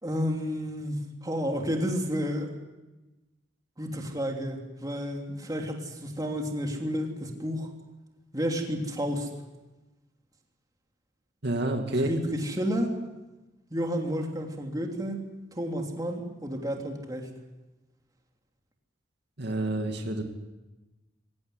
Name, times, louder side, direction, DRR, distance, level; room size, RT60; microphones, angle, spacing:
voice 1, 0.0-2.5 3.8-7.7 8.3-9.3 12.0-12.9 13.7-15.2 15.5-17.3, equal, 20° right, 2 dB, 3.1 m, -31 dB
voice 2, 11.4-12.1 19.4-20.2, right 1 dB, 60° right, 3 dB, 2.4 m, -28 dB
23.5 x 18.0 x 9.7 m, 1.1 s
head